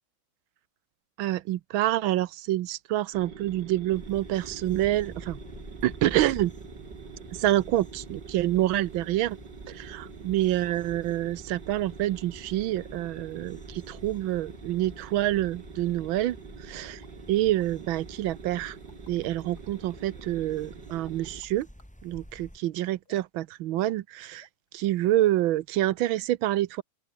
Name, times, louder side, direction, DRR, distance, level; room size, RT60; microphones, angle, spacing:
voice 1, 1.2-5.4 5.8-6.5 7.4-9.4 9.7-17.0 17.3-18.8 19.1-21.7 22.0-24.5 24.7-26.8, right 14 dB, 85° right, 1.5 m, -27 dB
sound 1, 3.1-21.4, right 6 dB, 60° right, 2.8 m, -46 dB
sound 2, 3.9-22.6, equal, 5° left, 3.4 m, -48 dB
sound 3, 17.0-17.1 17.6-17.7 18.6-19.6 20.9-21.9 23.0-23.4 23.8-24.1 24.4-24.7 25.0-25.1, left 3 dB, 50° left, 4.2 m, -60 dB
open air
omnidirectional pair, 2.2 m